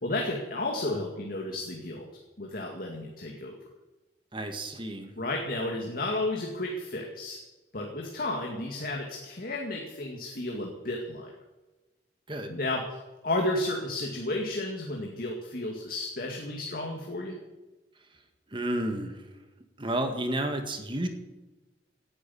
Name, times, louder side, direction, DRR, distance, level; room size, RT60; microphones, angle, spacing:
voice 1, 0.0-2.1 2.4-3.6 5.2-7.4 7.7-11.3 12.5-13.0 13.2-17.4, left 2 dB, 55° left, 1 dB, 2.2 m, -32 dB
voice 2, 4.3-5.1 12.3-12.5 18.5-19.2 19.8-21.1, right 1 dB, 30° right, 6 dB, 1.9 m, -31 dB
18.0 x 9.9 x 7.1 m, 1.1 s
head